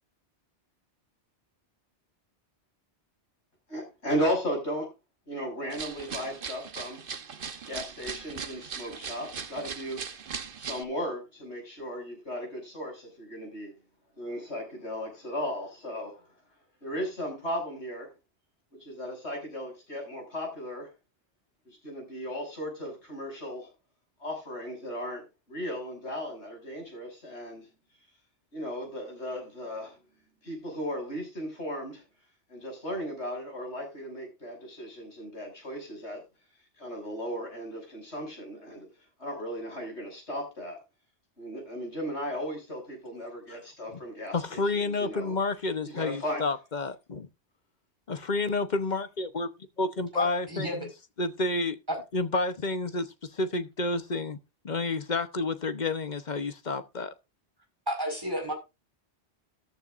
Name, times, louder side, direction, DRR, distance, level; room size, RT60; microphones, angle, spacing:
voice 1, 3.7-4.9 5.3-7.0 7.3-10.1 10.6-13.7 14.2-16.4 16.8-18.1 18.8-20.9 21.6-23.7 24.2-27.7 28.5-30.0 30.4-32.0 32.5-36.2 36.8-38.9 39.2-40.8 41.4-45.4 45.8-46.5, equal, 75° left, 7.0 m, -36 dB
sound 1, 5.7-10.8, right 6 dB, 55° right, 1.1 m, -39 dB
voice 2, 44.3-47.3 48.1-49.5 49.8-50.7 51.2-51.8 52.1-53.1 53.3-54.4 54.6-57.1, left 3 dB, 45° left, 1.0 m, -30 dB
voice 3, 50.1-50.9 51.9-52.0 57.9-58.5, equal, 20° right, 4.9 m, -32 dB
14.0 x 11.5 x 2.5 m
omnidirectional pair, 1.2 m